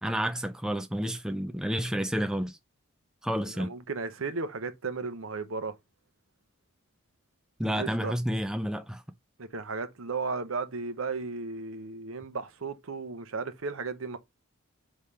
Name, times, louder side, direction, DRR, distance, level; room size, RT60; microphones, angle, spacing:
voice 1, 0.0-2.6 3.2-3.7 7.6-9.0, equal, 5° right, 0.3 m, -30 dB
voice 2, 3.5-5.7 7.6-8.1 9.4-14.2, right 4 dB, 80° right, 0.8 m, -35 dB
4.8 x 3.5 x 5.6 m
head